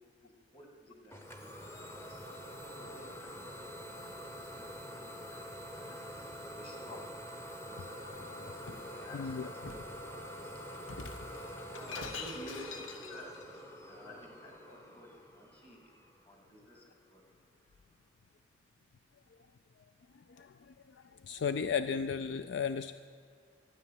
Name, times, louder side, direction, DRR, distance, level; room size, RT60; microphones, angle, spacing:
voice 1, 0.0-2.2 2.7-5.4 5.7-7.3 7.6-17.2, equal, 30° left, 1 dB, 2.3 m, -54 dB
Idling / Domestic sounds home sounds, 1.1-16.6, equal, 15° left, 0.9 m, -46 dB
Shatter, 8.1-8.9 9.7-10.0 10.8-13.5, left 4 dB, 85° left, 0.9 m, -45 dB
voice 2, 21.3-22.9, left 6 dB, 65° left, 12 dB, 0.3 m, -34 dB
12.5 x 9.4 x 7.5 m, 2.2 s
head